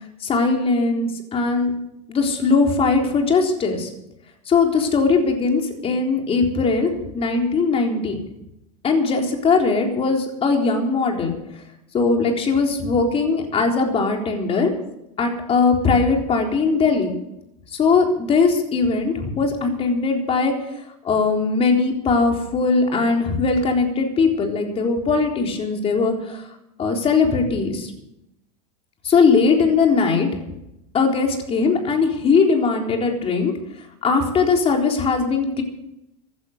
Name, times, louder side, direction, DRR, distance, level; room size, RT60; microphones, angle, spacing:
voice 1, 0.2-1.7 2.1-3.9 4.5-8.2 8.8-11.3 11.9-14.7 15.2-17.1 17.7-20.5 21.0-26.4 26.8-27.9 29.0-30.3 30.9-33.5 34.0-35.6, left 4 dB, 30° left, 2 dB, 3.9 m, -20 dB
16.0 x 11.5 x 6.8 m, 0.84 s
hypercardioid pair, 105°, 19 cm